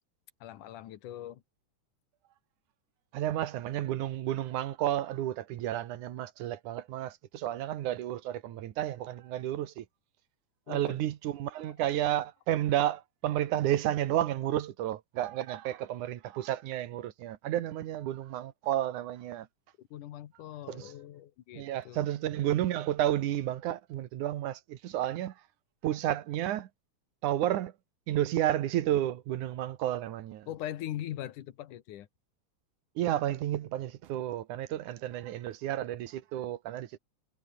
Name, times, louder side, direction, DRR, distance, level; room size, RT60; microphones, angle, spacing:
voice 1, 0.4-1.4 10.7-11.0 11.7-11.8 19.8-22.1 30.5-32.1, left 12 dB, 85° left, 2.9 m, -41 dB
voice 2, 3.1-9.9 10.7-19.5 20.7-20.9 21.5-25.3 25.8-26.7 27.2-27.7 28.1-30.5 33.0-37.0, right 12 dB, 85° right, 2.7 m, -31 dB
omnidirectional pair, 3.5 m